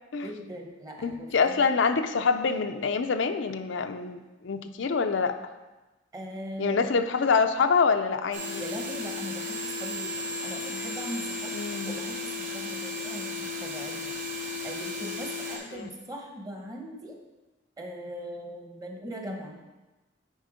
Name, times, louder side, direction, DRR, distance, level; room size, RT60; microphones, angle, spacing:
voice 1, 0.2-1.7 6.1-6.9 8.6-11.5 11.8-14.1 14.6-17.2 17.8-19.6, equal, 20° right, 1 dB, 1.1 m, -40 dB
voice 2, 1.0-5.3 6.6-8.6 11.5-12.0 15.7-15.9, left 5 dB, 75° left, 7 dB, 0.5 m, -26 dB
sound 1, 8.3-15.6, left 2 dB, 40° right, 1.8 m, -34 dB
9.2 x 4.4 x 5.0 m, 1.1 s
head